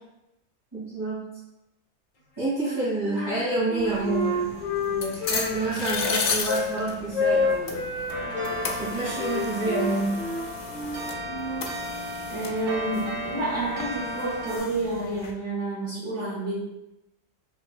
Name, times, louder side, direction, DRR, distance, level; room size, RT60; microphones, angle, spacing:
voice 1, 0.7-1.3 2.4-4.5 4.9-7.9 8.8-10.2, right 2 dB, 20° right, -13 dB, 1.4 m, -28 dB
Wind instrument woodwind instrument, 2.5-3.3 3.7-6.8 7.1-8.6 9.2-11.7, left 3 dB, 85° left, 1.4 m, -29 dB
sound 1, 3.8-15.3, left 4 dB, 65° left, 0.6 m, -35 dB
sound 2, 8.1-14.6, equal, 75° right, 1.3 m, -34 dB
voice 2, 12.3-16.6, right 2 dB, 60° right, -7 dB, 1.3 m, -29 dB
5.5 x 2.9 x 2.2 m, 0.92 s
omnidirectional pair, 1.5 m